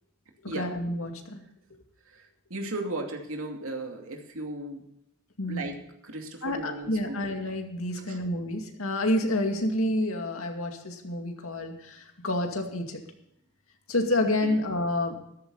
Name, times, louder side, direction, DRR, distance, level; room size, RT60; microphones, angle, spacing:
voice 1, 0.5-1.4 5.4-5.7 6.4-13.0 13.9-15.2, left 1 dB, 85° left, 4 dB, 2.3 m, -29 dB
voice 2, 2.1-4.8 5.5-5.7 6.0-7.3 7.9-8.2 14.4-14.6, right 2 dB, 80° right, 2 dB, 2.6 m, -36 dB
14.0 x 12.5 x 4.1 m, 0.81 s
head